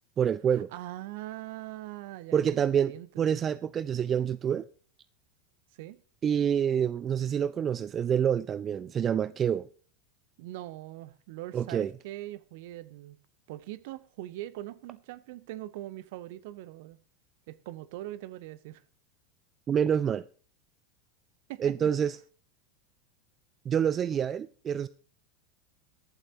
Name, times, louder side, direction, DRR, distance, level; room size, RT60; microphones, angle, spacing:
voice 1, 0.2-0.7 2.3-4.6 6.2-9.7 11.5-11.9 19.7-20.2 21.6-22.2 23.7-24.9, right 8 dB, 30° right, 0.4 m, -27 dB
voice 2, 0.7-3.4 5.8-6.0 10.4-13.2 13.5-17.0 17.5-18.8 21.5-21.8, right 15 dB, 55° right, 0.8 m, -41 dB
22.5 x 7.6 x 2.7 m
figure-of-eight pair, 85°, 0 cm